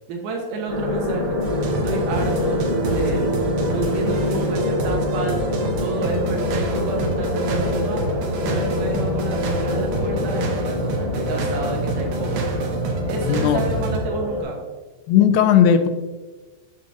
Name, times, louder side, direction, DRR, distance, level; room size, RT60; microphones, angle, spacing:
voice 1, 0.1-1.4 1.7-2.6 2.9-3.3 3.7-8.0 8.4-12.6 13.1-14.6, right 2 dB, 70° right, 0 dB, 2.5 m, -29 dB
sound 1, 0.7-14.4, left 2 dB, 40° right, 1.7 m, -25 dB
sound 2, 1.4-14.0, right 3 dB, 85° right, 2.7 m, -28 dB
voice 2, 13.3-13.6 15.1-15.9, left 9 dB, 85° left, 7 dB, 2.3 m, -16 dB
7.0 x 6.4 x 2.6 m, 1.3 s
omnidirectional pair, 4.0 m